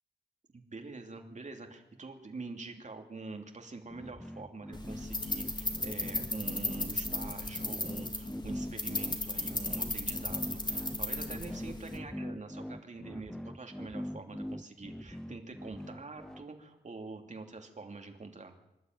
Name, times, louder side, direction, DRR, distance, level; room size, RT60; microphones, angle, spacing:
voice 1, 0.5-18.6, right 3 dB, 45° right, 4 dB, 2.9 m, -45 dB
sound 1, 3.9-16.4, equal, 5° left, 0.7 m, -42 dB
sound 2, 4.7-12.0, left 2 dB, 25° left, 2.3 m, -36 dB
25.5 x 12.0 x 9.6 m, 0.92 s
wide cardioid pair, 130°, 18 cm